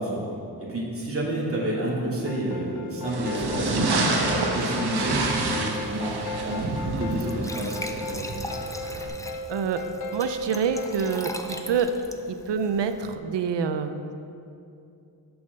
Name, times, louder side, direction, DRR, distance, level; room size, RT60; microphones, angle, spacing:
voice 1, 0.0-8.2, right 1 dB, 35° right, -6 dB, 2.3 m, -30 dB
sound 1, 2.3-11.8, left 1 dB, 60° left, 0.8 m, -36 dB
sound 2, 3.1-9.1, right 2 dB, 65° right, 1.2 m, -28 dB
Glass / Trickle dribble / Fill (with liquid), 5.8-13.2, left 1 dB, 10° left, 0.4 m, -41 dB
voice 2, 9.5-11.9 12.3-14.1, right 6 dB, 85° right, 9 dB, 0.7 m, -27 dB
7.1 x 7.0 x 6.6 m, 2.6 s
wide cardioid pair, 135°, 41 cm